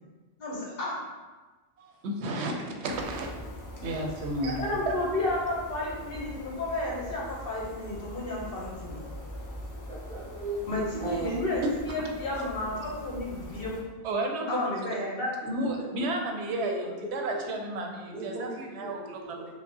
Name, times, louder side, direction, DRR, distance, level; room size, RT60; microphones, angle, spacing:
voice 1, 0.4-1.0 4.6-9.1 10.7-13.8 14.5-15.3, left 2 dB, 65° left, -3 dB, 1.0 m, -32 dB
voice 2, 2.0-3.3 3.8-4.9 11.6-11.7 12.4-12.5 14.0-14.7 15.5-19.4, right 1 dB, 90° right, 2 dB, 0.9 m, -32 dB
sound 1, 2.9-13.8, equal, 30° left, 0.3 m, -42 dB
voice 3, 9.9-11.3 16.6-17.4 18.1-19.6, right 1 dB, 5° left, -7 dB, 0.7 m, -37 dB
4.7 x 2.0 x 2.7 m, 1.2 s
omnidirectional pair, 1.1 m